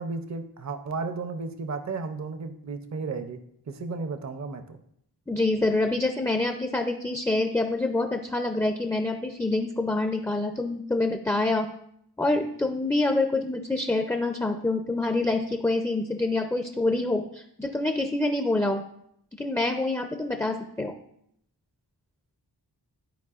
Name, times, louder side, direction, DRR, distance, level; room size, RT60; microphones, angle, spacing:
voice 1, 0.0-3.4 3.7-4.8, right 4 dB, 45° right, 8 dB, 0.6 m, -33 dB
voice 2, 5.3-11.7 12.2-18.8 19.4-20.9, left 2 dB, 5° left, 5 dB, 0.4 m, -26 dB
12.5 x 4.3 x 2.4 m, 0.73 s
wide cardioid pair, 85°, 41 cm